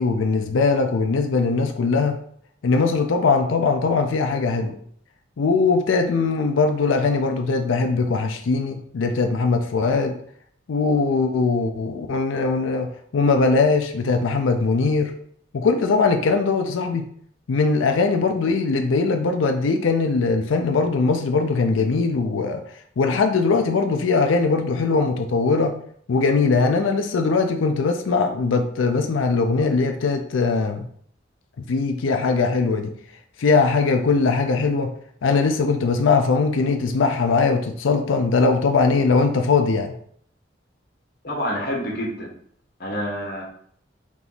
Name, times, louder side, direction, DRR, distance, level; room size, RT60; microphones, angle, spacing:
voice 1, 0.0-2.2 2.6-4.8 5.4-10.2 10.7-15.1 15.5-17.1 17.5-22.6 23.0-25.8 26.1-30.9 31.7-32.9 33.4-34.9 35.2-39.9, left 4 dB, 85° left, 5 dB, 0.5 m, -20 dB
voice 2, 41.2-42.3 42.8-43.4, equal, 55° left, -3 dB, 1.3 m, -27 dB
3.6 x 2.9 x 3.9 m, 0.62 s
head